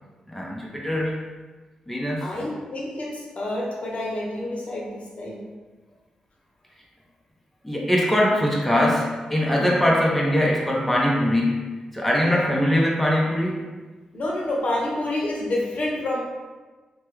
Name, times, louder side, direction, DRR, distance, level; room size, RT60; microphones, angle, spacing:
voice 1, 0.3-1.1 1.9-2.2 7.6-11.6 11.9-13.6, left 1 dB, 5° left, -3 dB, 0.8 m, -22 dB
voice 2, 2.2-5.4 12.2-12.5 14.1-16.2, left 1 dB, 60° left, -3 dB, 0.8 m, -28 dB
3.0 x 2.3 x 3.1 m, 1.3 s
supercardioid pair, 45°, 3 cm